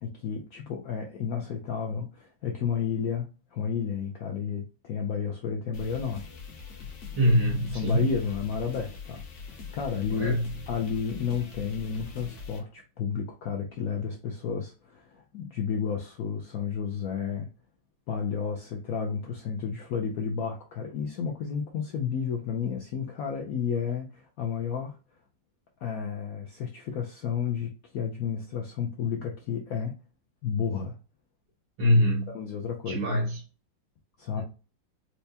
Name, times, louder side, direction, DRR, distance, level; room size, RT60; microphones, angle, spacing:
voice 1, 0.0-6.2 6.6-6.8 7.7-9.2 9.5-10.3 10.7-17.5 18.1-25.0 25.8-30.0 30.4-31.0 32.3-33.0 34.2-34.4, left 6 dB, 80° left, 0.8 m, -32 dB
sound 1, 5.7-12.6, left 4 dB, 60° left, 1.2 m, -42 dB
voice 2, 7.2-8.1 10.1-10.5 31.8-32.3 32.9-33.4 34.4-34.5, equal, 90° right, 2.1 m, -24 dB
4.4 x 2.1 x 2.7 m
omnidirectional pair, 2.0 m